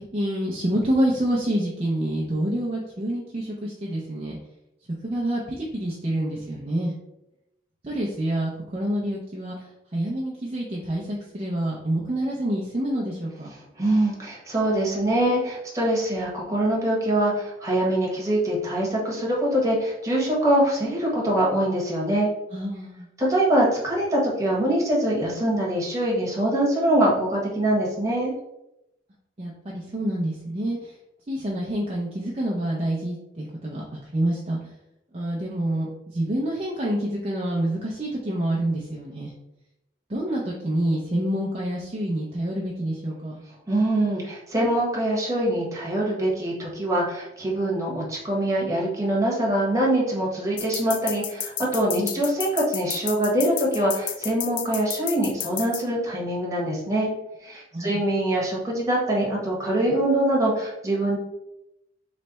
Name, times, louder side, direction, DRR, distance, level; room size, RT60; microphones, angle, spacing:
voice 1, 0.0-4.4 5.0-6.9 7.8-9.6 9.9-13.5 22.5-23.1 29.4-30.9 31.3-33.8 34.1-34.6 35.1-39.3 40.1-43.4 52.0-52.2 57.7-58.0, right 1 dB, 35° right, -3 dB, 0.6 m, -27 dB
voice 2, 13.8-22.3 23.2-28.3 43.7-57.1 57.4-61.2, right 1 dB, 20° right, -4 dB, 1.3 m, -24 dB
sound 1, 50.6-55.8, left 10 dB, 85° left, 0.4 m, -31 dB
3.3 x 3.2 x 4.1 m, 0.86 s
head